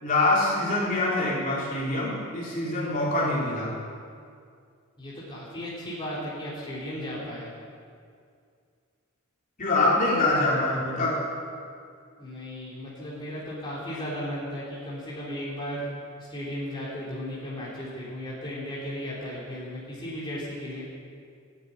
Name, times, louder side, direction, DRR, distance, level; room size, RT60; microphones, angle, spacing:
voice 1, 0.0-3.7 9.6-11.2, left 2 dB, 40° left, -6 dB, 3.9 m, -25 dB
voice 2, 5.0-7.5 12.2-15.9 16.2-20.9, equal, 20° left, -8 dB, 3.7 m, -35 dB
14.5 x 9.5 x 9.9 m, 2.3 s
head